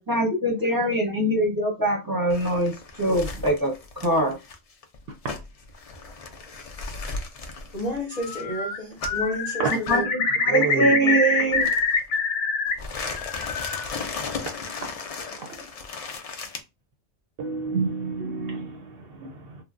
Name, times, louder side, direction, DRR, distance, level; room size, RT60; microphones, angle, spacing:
voice 1, 0.1-2.7 3.0-4.4 9.9-10.2 10.5-11.7, right 1 dB, 20° right, 0.8 m, -23 dB
sound 1, 2.3-9.3 9.7-10.0 11.5-12.2 12.7-16.6, left 4 dB, 65° left, 0.3 m, -36 dB
voice 2, 7.7-10.0, left 1 dB, 40° left, 0.7 m, -31 dB
Bird, 8.2-8.8 9.0-12.7 13.1-13.9, left 4 dB, 90° left, 0.9 m, -25 dB
voice 3, 10.5-11.0 17.4-19.6, right 4 dB, 65° right, 0.7 m, -29 dB
3.2 x 2.1 x 2.4 m
omnidirectional pair, 1.2 m